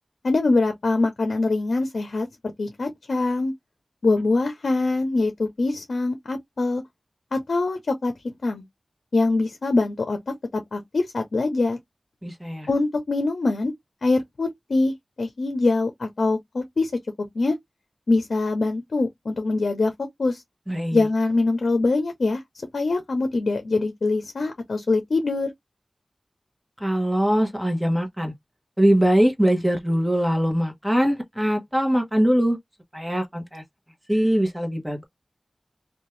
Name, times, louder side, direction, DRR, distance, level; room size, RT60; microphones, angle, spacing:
voice 1, 0.2-2.3 2.6-3.5 4.0-6.8 7.3-8.1 8.4-8.6 9.1-11.8 12.7-13.7 14.0-16.9 17.2-17.6 18.1-19.9 20.2-20.4 20.9-22.4 22.7-25.5, left 3 dB, 85° left, 0.6 m, -23 dB
voice 2, 12.2-12.7 20.7-21.1 26.8-28.3 28.8-32.6 32.9-33.6 34.1-35.1, equal, 5° right, 1.0 m, -22 dB
2.7 x 2.3 x 3.1 m
wide cardioid pair, 60°, 0 cm